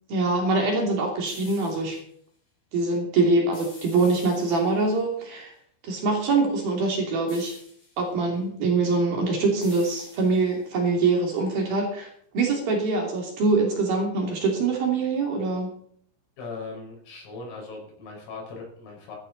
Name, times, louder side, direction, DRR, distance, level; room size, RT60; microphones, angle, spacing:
voice 1, 0.1-2.0 2.7-5.5 5.8-7.5 8.0-12.1 12.3-15.7, right 3 dB, 50° right, 0 dB, 4.1 m, -24 dB
sound 1, 1.2-2.0 3.5-5.0 7.3-8.1 9.6-10.7, left 3 dB, 35° left, 8.4 m, -48 dB
voice 2, 16.4-19.2, left 3 dB, 75° left, -1 dB, 7.8 m, -39 dB
15.0 x 14.0 x 4.0 m, 0.63 s
omnidirectional pair, 5.9 m